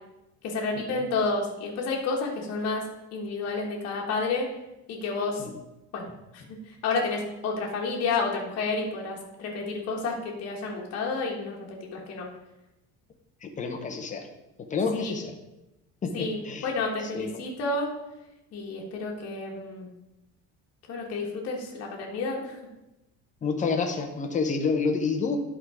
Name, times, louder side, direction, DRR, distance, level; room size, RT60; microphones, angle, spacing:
voice 1, 0.4-2.8 3.1-4.5 4.9-5.4 5.9-12.3 14.9-15.1 16.1-18.0 18.5-19.9 20.9-22.6, left 3 dB, 45° left, -1 dB, 1.3 m, -30 dB
voice 2, 13.4-14.3 14.7-15.3 16.0-16.7 17.1-17.4 23.4-25.4, left 4 dB, 20° left, 5 dB, 0.8 m, -29 dB
11.0 x 3.8 x 4.8 m, 0.96 s
cardioid pair, 165°, 34 cm